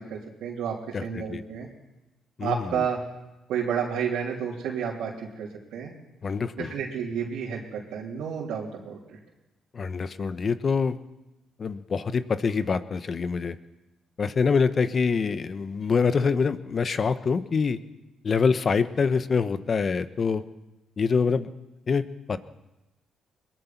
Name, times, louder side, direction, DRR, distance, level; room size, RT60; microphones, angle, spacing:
voice 1, 0.0-1.7 2.4-3.0 3.5-5.9 6.6-9.2, right 7 dB, 85° right, -5 dB, 3.3 m, -31 dB
voice 2, 0.9-1.4 2.4-2.9 6.2-6.7 9.7-11.0 11.6-13.6 14.2-17.8 18.2-20.4 21.0-21.5 21.9-22.4, left 5 dB, 45° left, 12 dB, 1.1 m, -25 dB
21.5 x 21.0 x 5.9 m, 1.0 s
cardioid pair, 90°, 0 cm